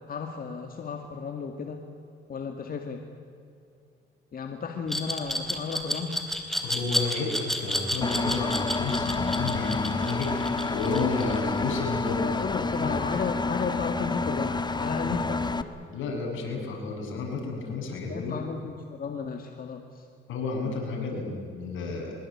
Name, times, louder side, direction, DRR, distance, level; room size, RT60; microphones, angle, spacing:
voice 1, 0.1-1.8 2.3-3.0 4.3-6.2 12.2-15.5 17.8-20.1 21.1-21.2, left 5 dB, 45° left, 4 dB, 2.3 m, -34 dB
Glass, 4.9-11.7, equal, ahead, 3.9 m, -30 dB
voice 2, 6.6-12.2 12.7-12.9 15.0-15.1 15.9-18.4 20.3-22.1, left 4 dB, 80° left, 0 dB, 7.3 m, -31 dB
Engine, 8.0-15.6, left 3 dB, 20° left, 1.4 m, -29 dB
23.5 x 23.0 x 8.8 m, 2.5 s
cardioid pair, 90°, 20 cm